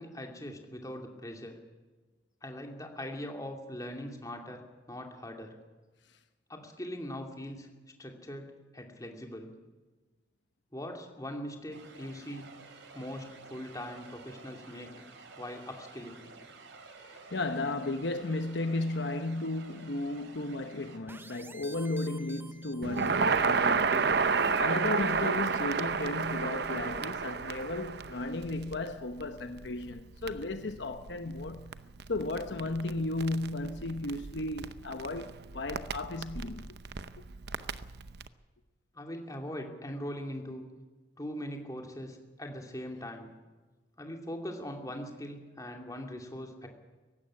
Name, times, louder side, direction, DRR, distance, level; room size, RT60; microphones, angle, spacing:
voice 1, 0.0-1.6 2.4-5.6 6.5-7.7 8.0-9.5 10.7-12.5 12.9-14.9 15.4-16.2 38.9-40.7 41.2-43.3 44.0-46.7, equal, 20° left, 2.6 m, -41 dB
sound 1, 11.7-21.0, right 3 dB, 75° right, 2.9 m, -52 dB
voice 2, 17.1-31.8 32.1-36.7, left 2 dB, 65° left, 0.9 m, -34 dB
sound 2, 21.1-23.5, right 2 dB, 10° right, 0.6 m, -50 dB
Crackle, 22.8-38.3, right 5 dB, 60° right, 0.8 m, -32 dB
18.0 x 15.5 x 9.7 m
head